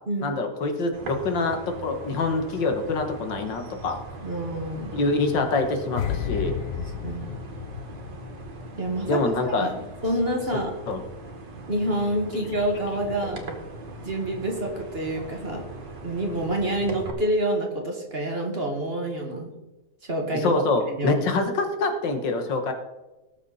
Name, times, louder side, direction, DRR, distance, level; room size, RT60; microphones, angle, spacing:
voice 1, 0.2-4.0 4.9-6.5 9.1-9.8 10.5-10.6 10.9-11.0 12.5-12.6 13.1-13.2 20.4-22.7, left 3 dB, 80° left, 5 dB, 2.1 m, -25 dB
sound 1, 0.9-17.1, right 3 dB, 75° right, 2.4 m, -40 dB
voice 2, 4.2-4.9 7.0-7.3 8.8-9.2 9.6-9.7 10.0-10.7 11.7-13.4 14.0-15.6 16.0-19.5 20.0-20.5 20.9-21.2, right 1 dB, 35° right, 1 dB, 2.1 m, -27 dB
sound 2, 6.0-9.2 9.4-9.7, left 10 dB, 60° left, 1.0 m, -32 dB
18.5 x 7.1 x 4.2 m, 1.0 s
omnidirectional pair, 2.0 m